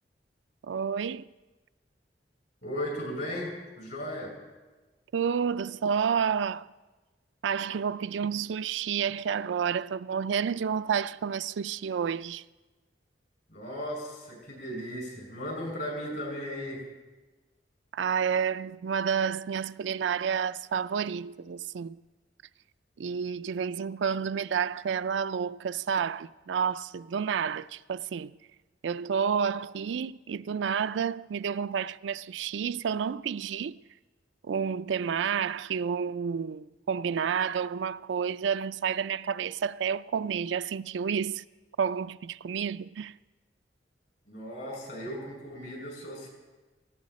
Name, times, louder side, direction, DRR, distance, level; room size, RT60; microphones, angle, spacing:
voice 1, 0.6-1.3 5.1-6.7 7.4-12.4 17.9-22.0 23.0-28.3 28.8-33.8 34.4-41.4 41.8-43.2, right 7 dB, 85° right, 0.4 m, -30 dB
voice 2, 2.6-4.4 13.5-16.8 44.3-46.3, equal, 65° left, 6.1 m, -36 dB
18.0 x 15.5 x 4.2 m
head